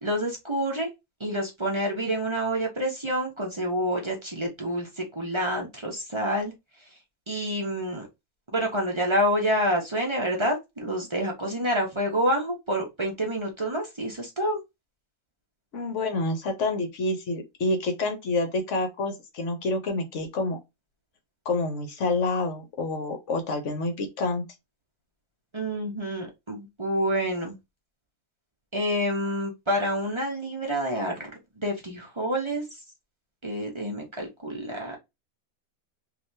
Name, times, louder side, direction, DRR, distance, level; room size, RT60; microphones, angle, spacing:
voice 1, 0.0-0.9 1.2-6.5 7.3-8.1 8.5-14.6 25.5-27.6 28.7-31.3 31.6-32.6 33.4-35.0, equal, 25° right, 0.6 m, -28 dB
voice 2, 15.7-20.6 21.5-24.4, left 2 dB, 60° left, 1.0 m, -28 dB
3.3 x 2.7 x 2.7 m
omnidirectional pair, 1.6 m